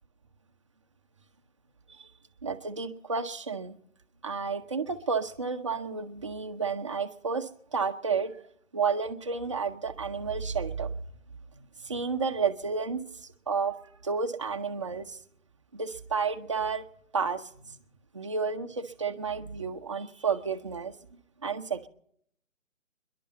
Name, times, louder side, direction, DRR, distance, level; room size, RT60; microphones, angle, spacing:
voice 1, 2.4-3.8 4.2-8.4 8.7-10.9 11.5-15.2 15.7-16.8 17.1-17.8 18.1-20.9 21.4-21.9, right 5 dB, 25° right, 7 dB, 0.6 m, -31 dB
29.0 x 11.5 x 4.2 m, 0.69 s
figure-of-eight pair, 145°, 40 cm